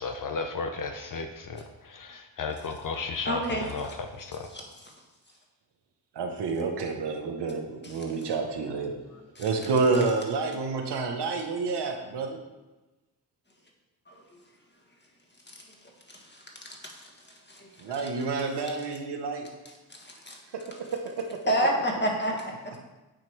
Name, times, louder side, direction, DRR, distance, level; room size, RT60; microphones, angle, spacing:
voice 1, 0.0-4.5, left 4 dB, 50° left, 6 dB, 0.7 m, -34 dB
voice 2, 3.3-3.7 9.4-9.5 16.3-16.4 17.5-17.7 20.0-20.4 21.5-22.5, equal, 25° left, 0 dB, 1.7 m, -27 dB
voice 3, 6.1-8.9 9.4-12.4 17.8-19.5 20.5-21.4, right 4 dB, 70° right, 4 dB, 1.0 m, -29 dB
8.8 x 3.0 x 4.5 m, 1.1 s
supercardioid pair, 45°, 42 cm